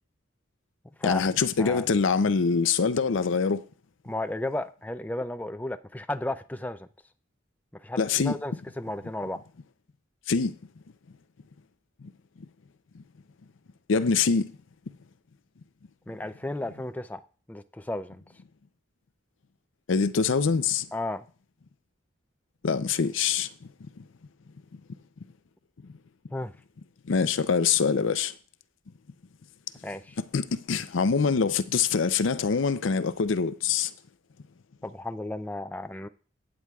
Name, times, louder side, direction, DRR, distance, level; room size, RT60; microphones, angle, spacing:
voice 1, 1.0-3.7 8.0-8.4 10.3-10.5 12.9-13.0 13.9-14.5 19.9-20.9 22.6-23.5 24.0-24.1 27.1-28.3 30.3-33.9, left 5 dB, 80° left, 0.5 m, -24 dB
voice 2, 4.0-6.9 7.8-9.4 16.1-17.2 17.5-18.2 20.9-21.2 26.3-26.5 29.8-30.2 34.8-36.1, left 1 dB, 10° left, 0.3 m, -34 dB
14.5 x 9.0 x 2.3 m
head